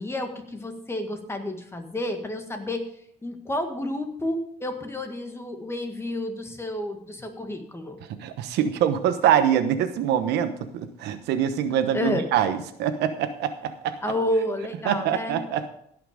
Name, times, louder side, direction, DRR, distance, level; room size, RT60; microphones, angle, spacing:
voice 1, 0.0-2.9 3.2-8.0 11.9-12.3 14.0-15.4, left 1 dB, 15° left, 5 dB, 1.7 m, -30 dB
voice 2, 8.2-13.9 14.9-15.7, right 9 dB, 80° right, 10 dB, 1.1 m, -24 dB
16.0 x 5.9 x 5.0 m, 0.69 s
cardioid pair, 110°, 17 cm